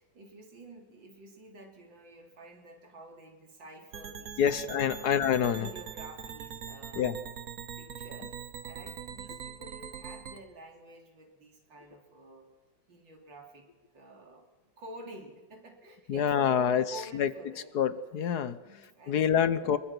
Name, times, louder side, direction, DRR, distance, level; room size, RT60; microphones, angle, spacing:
voice 1, 0.0-5.2 5.6-7.3 7.8-12.5 12.9-14.5 14.8-17.8 18.5-19.5, right 1 dB, 70° right, 2 dB, 3.9 m, -50 dB
sound 1, 3.9-10.4, right 7 dB, 50° right, 1.5 m, -42 dB
voice 2, 4.4-5.7 6.9-7.2 16.1-16.8 17.1-17.3 17.7-18.6 19.1-19.8, left 8 dB, 60° left, 14 dB, 1.4 m, -26 dB
26.0 x 22.5 x 6.1 m, 1.2 s
omnidirectional pair, 2.1 m